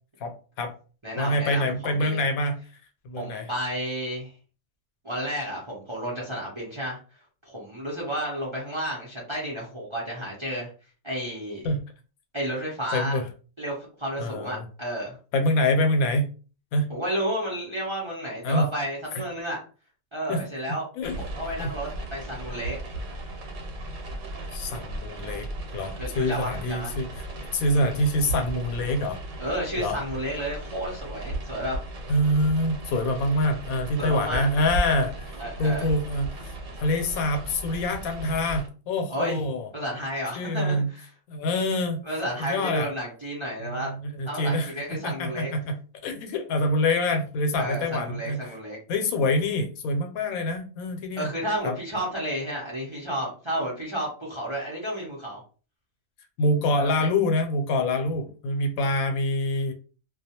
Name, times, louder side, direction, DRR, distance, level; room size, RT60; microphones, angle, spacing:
voice 1, 0.2-0.7 1.2-2.6 3.0-3.5 11.6-11.8 12.9-13.3 14.2-14.6 15.3-16.3 16.7-16.9 18.4-18.7 20.3-20.4 21.0-21.2 21.6-21.7 24.5-25.5 25.7-27.1 27.5-29.2 29.8-30.0 32.1-36.5 36.8-39.7 40.3-40.9 41.3-42.0 42.4-42.9 43.6-44.7 45.0-45.8 46.0-48.4 48.9-51.3 51.6-51.7 56.4-59.7, left 1 dB, 85° left, 5 dB, 1.0 m, -25 dB
voice 2, 1.0-2.2 3.2-4.3 5.0-7.0 7.4-10.7 11.0-11.7 12.3-13.2 13.6-15.2 16.9-19.6 20.1-20.9 21.3-22.8 26.0-26.9 29.4-31.8 34.0-34.4 35.4-35.9 39.1-39.4 39.7-41.1 42.0-43.9 44.3-45.5 47.6-48.8 51.2-55.4 56.8-56.9, equal, 30° right, -4 dB, 0.6 m, -31 dB
sound 1, 21.0-38.7, right 1 dB, 80° right, 1.2 m, -36 dB
2.3 x 2.3 x 2.8 m, 0.36 s
omnidirectional pair, 1.5 m